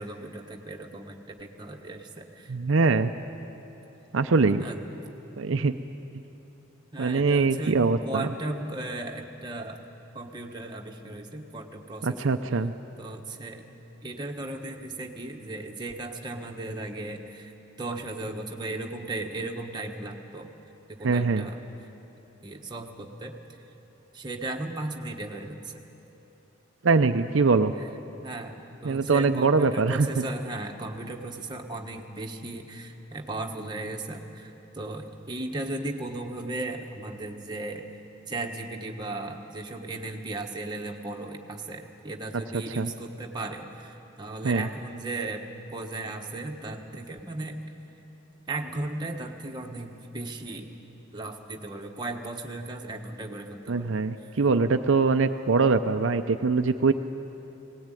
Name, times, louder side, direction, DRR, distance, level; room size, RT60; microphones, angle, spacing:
voice 1, 0.0-2.5 4.6-4.8 6.9-9.8 10.1-12.3 13.0-13.6 14.0-17.5 17.8-20.5 20.9-21.6 22.4-23.4 24.1-25.8 27.8-27.9 28.2-37.9 38.3-45.5 45.7-47.6 48.5-50.7 51.1-54.0, right 2 dB, 20° right, 1 dB, 1.4 m, -36 dB
voice 2, 2.5-3.1 4.1-4.6 5.4-5.7 7.0-8.3 12.0-12.7 21.0-21.5 26.8-27.7 28.8-30.2 42.8-42.9 44.4-44.7 53.7-56.9, right 4 dB, 70° right, 7 dB, 0.6 m, -23 dB
18.5 x 18.0 x 9.1 m, 3.0 s
head